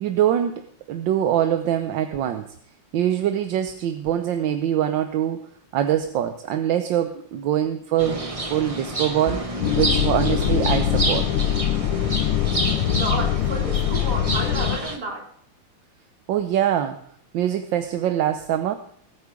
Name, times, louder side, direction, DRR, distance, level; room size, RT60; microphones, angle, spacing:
voice 1, 0.0-2.5 2.9-5.4 5.7-9.5 9.8-11.4 16.3-17.1 17.3-18.8, right 10 dB, 70° right, 7 dB, 1.4 m, -23 dB
sound 1, 8.0-15.0, right 2 dB, 25° right, 0.9 m, -29 dB
sound 2, 9.6-14.8, left 11 dB, 90° left, 1.7 m, -23 dB
voice 2, 12.9-15.3, right 2 dB, 50° right, 0 dB, 3.3 m, -31 dB
19.0 x 8.4 x 4.9 m, 0.62 s
omnidirectional pair, 2.3 m